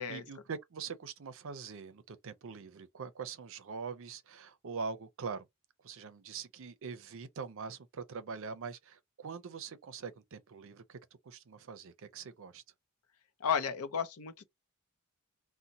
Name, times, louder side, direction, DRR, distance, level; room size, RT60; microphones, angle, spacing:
voice 1, 0.0-5.5 5.8-11.0 11.2-12.6, right 5 dB, 60° right, 0.5 m, -43 dB
voice 2, 13.4-14.4, left 7 dB, 70° left, 0.6 m, -33 dB
2.7 x 2.1 x 3.9 m
head